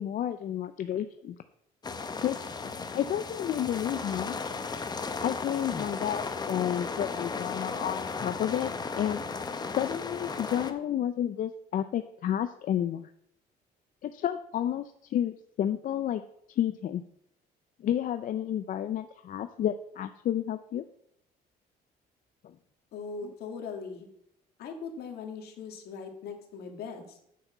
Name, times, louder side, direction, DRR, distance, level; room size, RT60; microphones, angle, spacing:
voice 1, 0.0-1.4 2.2-2.5 2.9-4.4 5.2-9.2 9.7-13.1 14.0-16.2 16.5-17.0 17.8-20.8 22.4-22.6 23.2-23.3, left 10 dB, 55° left, 10 dB, 0.6 m, -31 dB
sound 1, 1.8-10.7, left 4 dB, 25° left, 0.9 m, -35 dB
voice 2, 22.9-24.1 24.6-27.2, left 5 dB, 70° left, 4 dB, 2.1 m, -40 dB
8.5 x 5.9 x 7.2 m, 0.73 s
cardioid pair, 110°, 17 cm